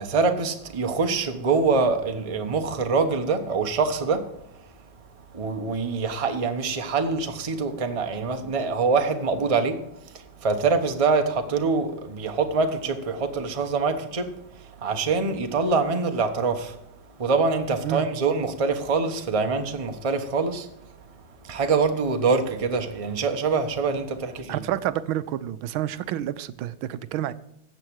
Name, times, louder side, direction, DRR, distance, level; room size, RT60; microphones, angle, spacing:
voice 1, 0.0-4.3 5.3-16.8 17.2-20.7 21.4-24.6, right 4 dB, 25° right, 0.8 m, -25 dB
voice 2, 24.5-27.3, right 12 dB, 85° right, 1.4 m, -29 dB
13.5 x 8.2 x 4.8 m
omnidirectional pair, 2.2 m